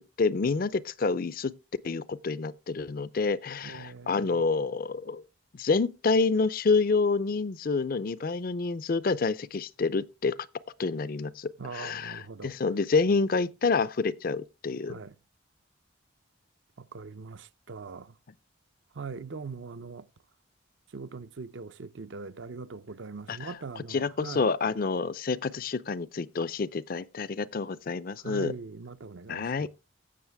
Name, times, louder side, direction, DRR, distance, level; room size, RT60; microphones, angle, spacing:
voice 1, 0.2-1.5 1.8-5.2 5.5-10.4 10.8-14.9 23.3-28.5 29.3-29.7, left 4 dB, 45° left, 0.4 m, -28 dB
voice 2, 3.6-4.4 11.6-12.5 14.9-15.1 16.8-18.1 19.0-20.0 20.9-24.5 28.2-29.7, right 4 dB, 65° right, 0.6 m, -41 dB
16.0 x 6.4 x 3.4 m
head